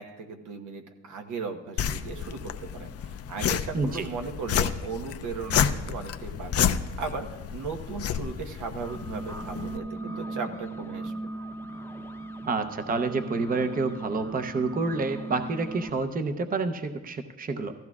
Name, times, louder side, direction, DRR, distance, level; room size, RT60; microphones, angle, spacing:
voice 1, 0.0-11.1, right 5 dB, 80° right, 4 dB, 1.2 m, -37 dB
sound 1, 1.8-9.8, left 8 dB, 50° left, 0.6 m, -30 dB
voice 2, 3.7-4.1 12.5-17.7, right 3 dB, 30° right, 8 dB, 0.7 m, -28 dB
sound 2, 8.8-15.9, right 2 dB, 5° left, 0.8 m, -38 dB
16.5 x 14.5 x 2.4 m, 1.2 s
cardioid pair, 90°, 30 cm